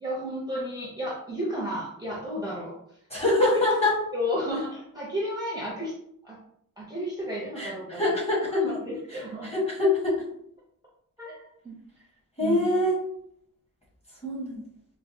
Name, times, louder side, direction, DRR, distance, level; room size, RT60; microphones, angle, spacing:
voice 1, 0.0-2.7 3.7-3.8 4.1-5.9 6.2-6.4 6.8-8.0 8.4-9.5 11.2-11.4 11.6-11.7 12.4-12.7, equal, 10° right, -5 dB, 0.6 m, -32 dB
voice 2, 3.1-4.0 7.6-8.6 9.4-10.2 12.4-13.0 14.2-14.6, left 2 dB, 20° left, -4 dB, 1.1 m, -24 dB
4.4 x 2.1 x 2.6 m, 0.71 s
wide cardioid pair, 175°, 34 cm